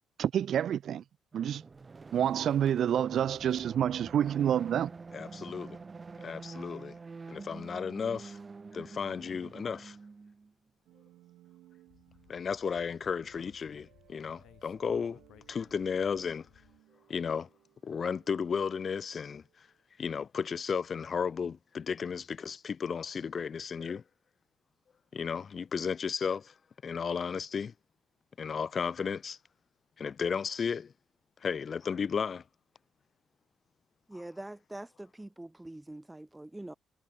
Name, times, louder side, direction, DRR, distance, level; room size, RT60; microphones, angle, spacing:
voice 1, 0.2-1.0 1.3-1.6 2.1-4.9, right 9 dB, 65° right, 0.3 m, -28 dB
sound 1, 1.3-10.5, right 4 dB, 30° right, 7.5 m, -47 dB
voice 2, 5.1-5.8 6.2-6.9 7.3-8.4 8.7-10.0 12.3-15.2 15.5-16.5 17.1-17.5 17.8-19.4 20.0-24.0 25.1-26.5 26.8-27.7 28.4-29.4 30.0-30.9 31.4-32.4, left 6 dB, 45° left, 0.4 m, -34 dB
sound 2, 10.9-19.8, right 15 dB, 90° right, 6.8 m, -63 dB
Speech, 11.9-16.8, left 11 dB, 75° left, 3.0 m, -60 dB
voice 3, 34.1-36.7, right 1 dB, 10° right, 0.8 m, -44 dB
cardioid pair, 90°, 0 cm